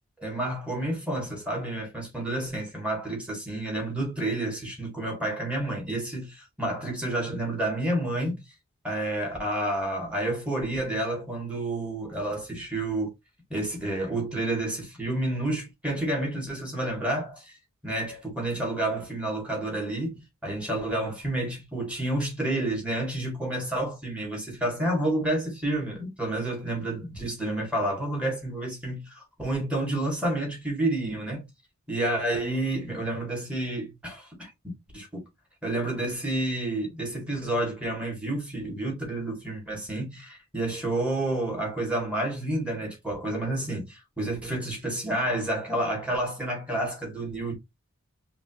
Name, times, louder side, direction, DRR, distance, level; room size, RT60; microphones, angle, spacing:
voice 1, 0.2-8.4 8.8-13.1 13.5-17.5 17.8-31.5 31.9-35.2 35.6-47.5, right 1 dB, 5° right, 2.3 m, -30 dB
5.1 x 3.0 x 3.0 m
head